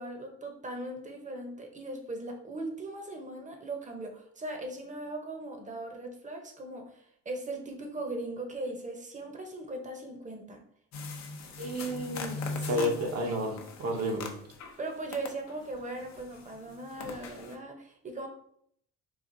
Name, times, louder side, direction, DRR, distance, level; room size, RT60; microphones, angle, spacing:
voice 1, 0.0-10.6 12.6-12.9 14.8-18.3, right 2 dB, 25° right, 3 dB, 0.7 m, -39 dB
sound 1, 10.9-14.8 15.1-17.5, left 3 dB, 65° left, 0.6 m, -40 dB
voice 2, 11.6-12.4 12.7-14.3, equal, 55° right, 3 dB, 0.8 m, -31 dB
4.0 x 2.4 x 2.6 m, 0.68 s
cardioid pair, 90°, 30 cm